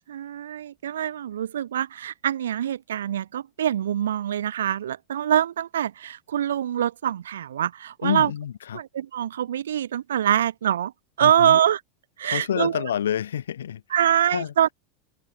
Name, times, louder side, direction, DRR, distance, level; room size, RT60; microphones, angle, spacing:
voice 1, 0.1-8.3 8.7-10.9 11.2-11.8 12.2-12.7 13.9-14.7, right 10 dB, 75° right, 0.9 m, -24 dB
voice 2, 8.0-8.8 11.2-11.6 12.2-14.0 14.3-14.5, left 9 dB, 75° left, 7.6 m, -28 dB
hypercardioid pair, 90°, 0 cm